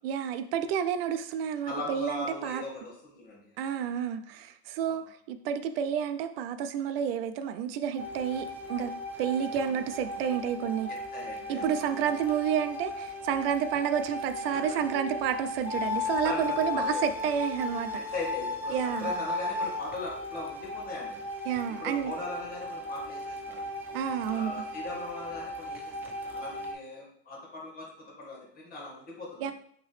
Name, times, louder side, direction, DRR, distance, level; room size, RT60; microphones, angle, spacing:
voice 1, 0.0-2.6 3.6-8.9 9.2-10.9 11.5-17.9 18.7-19.1 21.5-22.1 23.9-24.5 29.4-29.5, right 8 dB, 70° right, 10 dB, 0.5 m, -30 dB
voice 2, 1.7-3.9 4.9-5.0 10.9-11.9 14.5-14.6 16.0-17.0 17.9-21.2 21.8-23.6 24.3-29.5, left 2 dB, 30° left, -2 dB, 1.8 m, -40 dB
sound 1, 8.0-26.7, left 2 dB, 5° right, 0.4 m, -36 dB
5.4 x 3.0 x 3.2 m, 0.65 s
supercardioid pair, 135°, 30 cm